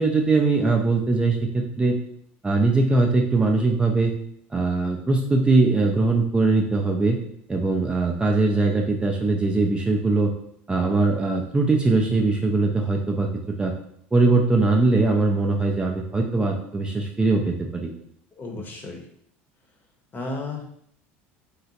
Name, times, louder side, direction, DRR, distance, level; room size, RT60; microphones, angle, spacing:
voice 1, 0.0-2.0 2.4-4.1 4.5-7.2 7.5-10.3 10.7-13.3 13.6-13.7 14.1-17.9, right 3 dB, 15° right, 1 dB, 0.4 m, -21 dB
voice 2, 18.4-19.1 20.1-20.7, left 2 dB, 35° left, 2 dB, 0.8 m, -33 dB
3.6 x 2.1 x 2.8 m, 0.67 s
hypercardioid pair, 90°, 6 cm